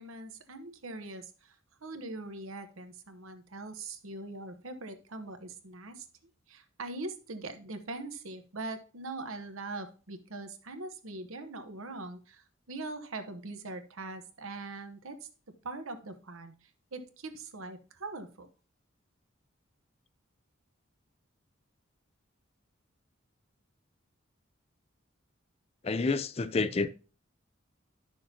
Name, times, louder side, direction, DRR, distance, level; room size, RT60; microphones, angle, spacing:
voice 1, 0.0-1.6 1.8-6.1 6.5-15.3 15.6-18.5, right 2 dB, 85° right, 1.1 m, -42 dB
voice 2, 25.8-26.9, left 3 dB, 30° left, 0.4 m, -29 dB
11.0 x 6.3 x 2.8 m
head